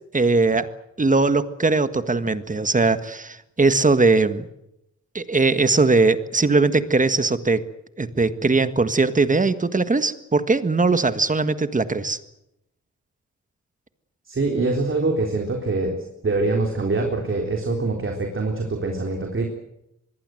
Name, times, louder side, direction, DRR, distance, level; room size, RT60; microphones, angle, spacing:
voice 1, 0.1-0.7 1.0-4.5 5.1-7.6 8.0-12.2, right 3 dB, 25° right, 12 dB, 1.6 m, -20 dB
voice 2, 14.3-16.0 16.2-19.5, right 3 dB, 45° right, 2 dB, 3.9 m, -24 dB
25.0 x 21.5 x 7.8 m, 0.84 s
wide cardioid pair, 130°, 30 cm